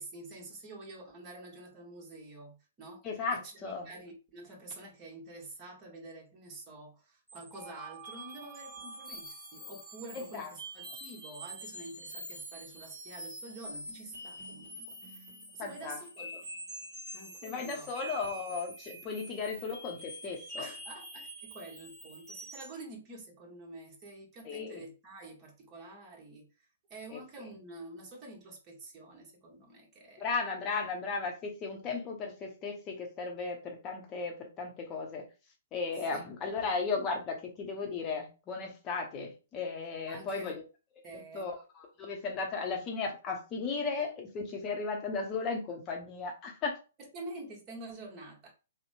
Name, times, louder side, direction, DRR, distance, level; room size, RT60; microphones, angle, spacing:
voice 1, 0.0-3.1 3.6-15.3 15.5-16.4 17.1-17.9 19.3-19.4 20.6-26.5 26.9-30.2 36.1-36.2 40.1-40.5 41.0-41.5 47.1-48.5, right 2 dB, 25° right, 1.1 m, -48 dB
voice 2, 3.0-3.9 10.1-10.5 15.6-16.0 17.4-20.7 24.4-24.8 27.1-27.2 30.2-35.2 35.7-40.6 41.1-46.8, left 4 dB, 30° left, 0.8 m, -36 dB
sound 1, 7.3-22.8, right 1 dB, 10° right, 1.3 m, -46 dB
2.8 x 2.1 x 2.6 m
figure-of-eight pair, 120°, 0 cm